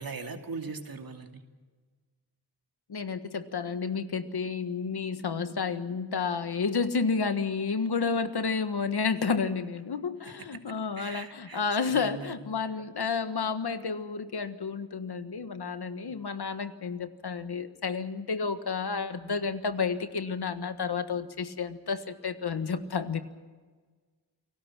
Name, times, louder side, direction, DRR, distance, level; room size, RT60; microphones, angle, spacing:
voice 1, 0.0-1.4 10.4-10.6 11.0-12.5, right 4 dB, 55° right, 4 dB, 2.5 m, -40 dB
voice 2, 2.9-23.2, left 5 dB, 65° left, 9 dB, 1.6 m, -31 dB
29.0 x 19.0 x 6.1 m, 1.4 s
wide cardioid pair, 105°, 42 cm